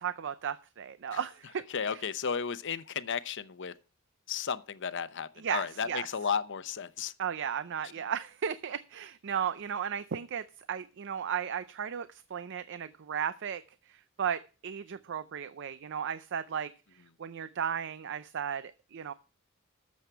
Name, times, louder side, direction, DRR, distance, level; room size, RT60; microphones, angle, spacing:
voice 1, 0.0-2.0 5.4-6.1 7.2-13.6 13.9-16.7 17.2-19.1, right 8 dB, 60° right, 0.5 m, -35 dB
voice 2, 1.7-3.7 4.3-7.1, left 6 dB, 60° left, 0.8 m, -34 dB
12.5 x 7.4 x 4.6 m
head